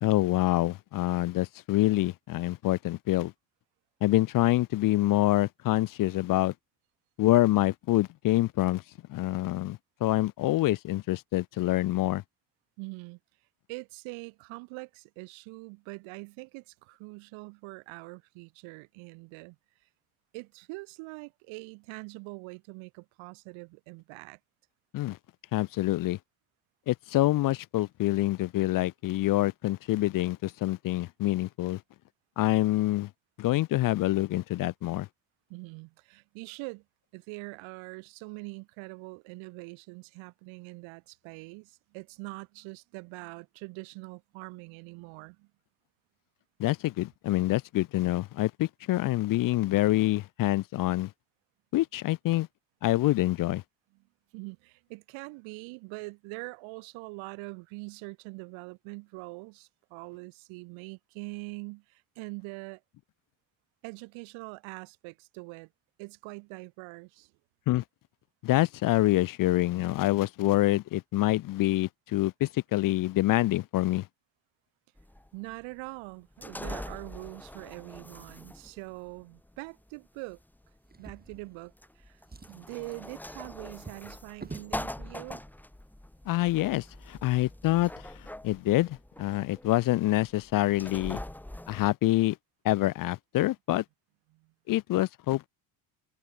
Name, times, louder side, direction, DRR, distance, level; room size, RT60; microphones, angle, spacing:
voice 1, 0.0-3.3 4.0-6.5 7.2-8.8 9.1-12.2 24.9-25.2 25.5-26.2 26.9-31.8 32.4-33.1 33.4-35.1 46.6-51.1 51.7-52.5 52.8-53.6 67.7-67.8 68.4-74.0 86.3-87.9 88.4-91.2 91.7-92.4 92.6-93.8 94.7-95.5, left 16 dB, 45° left, 0.5 m, -26 dB
voice 2, 12.8-13.2 13.7-19.6 20.3-24.4 35.5-36.8 37.1-45.5 54.3-62.8 63.8-65.7 66.0-67.3 75.3-80.4 81.0-82.2 82.5-85.4 94.3-94.5, right 28 dB, 80° right, 1.9 m, -43 dB
sound 1, 75.0-91.9, left 1 dB, 5° left, 1.7 m, -43 dB
Drawer open or close, 80.9-81.9 82.2-84.8 85.7-85.8 86.2-86.3, right 4 dB, 20° right, 5.9 m, -48 dB
supercardioid pair, 100°, 46 cm